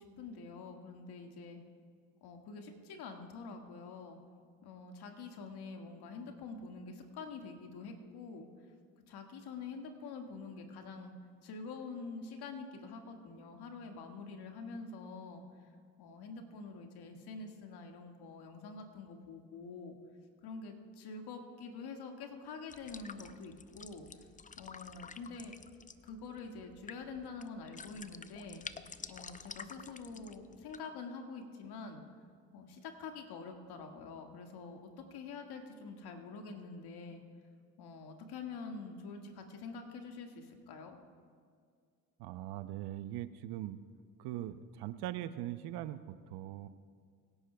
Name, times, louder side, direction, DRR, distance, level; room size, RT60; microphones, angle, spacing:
voice 1, 0.0-1.6 2.2-4.2 4.6-8.5 9.1-11.1 11.4-15.4 16.0-20.0 20.4-24.3 24.6-25.5 26.0-28.7 29.1-32.0 32.5-37.2 37.8-41.0, left 4 dB, 65° left, 3 dB, 1.9 m, -46 dB
sound 1, 22.7-30.8, left 5 dB, 20° left, 0.5 m, -50 dB
voice 2, 42.2-43.8 44.2-46.7, right 13 dB, 65° right, 13 dB, 0.7 m, -41 dB
25.5 x 11.0 x 2.3 m, 2.1 s
hypercardioid pair, 60°, 42 cm